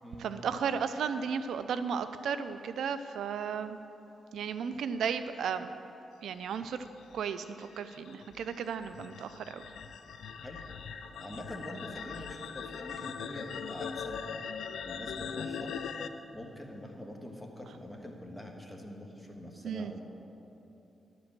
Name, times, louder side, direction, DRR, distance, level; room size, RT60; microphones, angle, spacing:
voice 1, 0.2-3.8 4.3-5.7 6.2-6.8 7.1-9.6 19.6-19.9, right 7 dB, 85° right, 11 dB, 0.3 m, -34 dB
sound 1, 6.8-16.1, left 6 dB, 85° left, 0.4 m, -41 dB
voice 2, 11.2-14.2 14.8-15.7 16.3-20.0, left 1 dB, ahead, 0 dB, 1.5 m, -44 dB
11.0 x 5.1 x 7.4 m, 3.0 s
cardioid pair, 70°, 0 cm